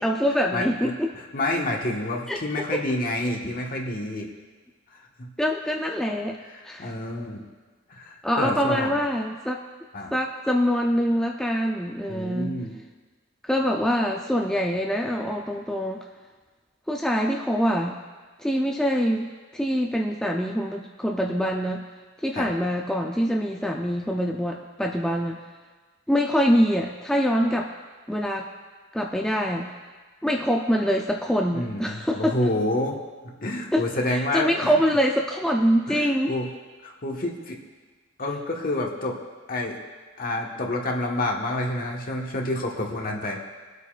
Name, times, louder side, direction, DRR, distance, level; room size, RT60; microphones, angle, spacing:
voice 1, 0.0-1.1 2.3-2.6 5.4-6.4 6.6-6.9 8.2-9.6 10.1-12.6 13.4-16.1 16.9-18.0 18.4-21.8 22.2-25.4 26.1-27.7 28.1-28.5 28.9-29.7 30.2-32.4 33.7-33.8 34.1-36.3, equal, 5° left, 0 dB, 0.5 m, -24 dB
voice 2, 0.5-4.3 4.9-5.3 6.5-7.4 7.9-8.9 9.9-10.1 12.1-12.7 22.3-22.5 31.5-33.0 33.4-34.7 35.9-36.5 36.8-37.6 38.2-39.2 39.5-39.8 40.2-43.4, left 1 dB, 45° left, 0 dB, 1.4 m, -28 dB
23.0 x 8.2 x 2.5 m, 1.4 s
head